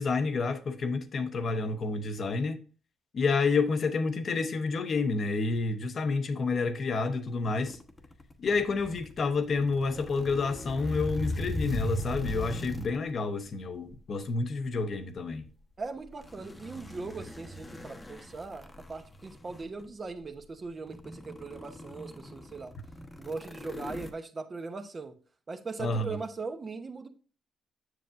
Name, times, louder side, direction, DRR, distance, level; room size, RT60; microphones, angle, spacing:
voice 1, 0.0-2.6 3.1-7.8 8.4-15.5 25.8-26.2, left 4 dB, 50° left, 0.8 m, -29 dB
sound 1, 7.5-13.1 13.9-14.2 16.0-19.9 20.4-20.5 20.9-24.1, left 1 dB, 20° left, 0.9 m, -39 dB
voice 2, 15.8-22.7 23.2-25.1 25.5-27.1, right 4 dB, 35° right, 0.9 m, -40 dB
7.5 x 6.5 x 2.5 m
cardioid pair, 90°, 0 cm